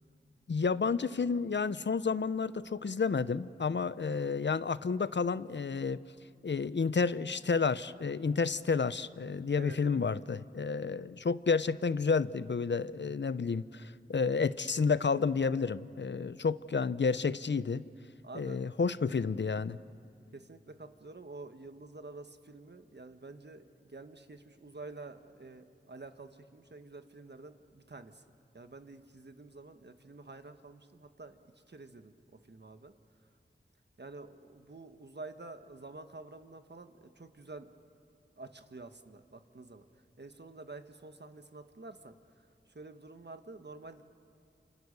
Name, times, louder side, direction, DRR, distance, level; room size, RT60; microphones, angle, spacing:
voice 1, 0.5-6.0 6.4-17.8 18.3-19.8, left 5 dB, 70° left, 16 dB, 0.7 m, -30 dB
voice 2, 9.5-10.0 18.2-18.6 20.3-28.2 28.5-32.1 32.4-32.9 34.0-37.7 38.4-39.9 40.2-42.2 42.7-44.0, right 3 dB, 60° right, 8 dB, 1.5 m, -49 dB
29.5 x 27.5 x 6.8 m, 2.4 s
wide cardioid pair, 45°, 19 cm